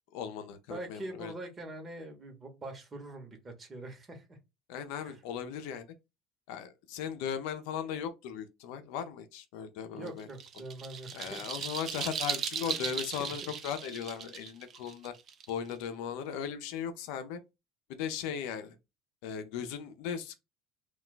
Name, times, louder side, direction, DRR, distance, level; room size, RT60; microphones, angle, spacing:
voice 1, 0.1-1.3 4.7-5.9 6.5-10.3 11.1-15.1 15.5-17.4 17.9-18.8 19.2-20.4, left 8 dB, 75° left, 0.6 m, -37 dB
voice 2, 0.7-4.4 5.0-5.2 9.9-11.5 12.6-12.9 13.2-13.5, right 2 dB, 30° right, 1.1 m, -44 dB
sound 1, 10.1-15.9, right 7 dB, 45° right, 0.4 m, -37 dB
2.4 x 2.2 x 3.9 m
supercardioid pair, 90°, 0 cm